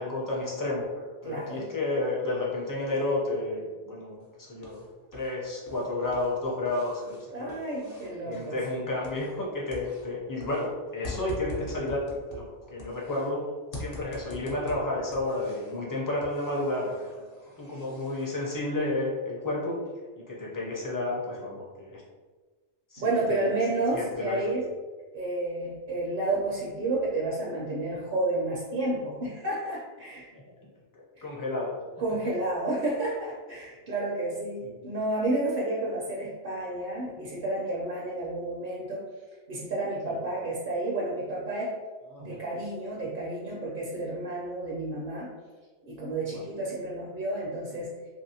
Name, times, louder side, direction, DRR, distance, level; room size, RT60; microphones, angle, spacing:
voice 1, 0.0-4.8 5.1-7.6 8.3-12.4 12.7-13.4 13.7-16.9 17.2-17.3 17.6-19.7 20.3-22.0 22.9-23.5 23.9-24.6 30.3-30.4 30.9-31.8 40.1-40.2 42.1-42.4 46.3-46.4, left 2 dB, 25° left, -4 dB, 0.4 m, -31 dB
voice 2, 1.2-1.7 7.3-8.6 23.0-24.6 25.1-30.3 31.2-31.3 32.0-39.0 39.5-41.7 42.2-45.3 45.8-47.9, right 2 dB, 55° right, -4 dB, 0.6 m, -31 dB
sound 1, 4.2-5.3 5.6-9.5 9.7-13.3 13.7-15.8 16.2-18.3, left 2 dB, 55° left, 0.8 m, -44 dB
2.9 x 2.7 x 2.7 m, 1.4 s
omnidirectional pair, 1.2 m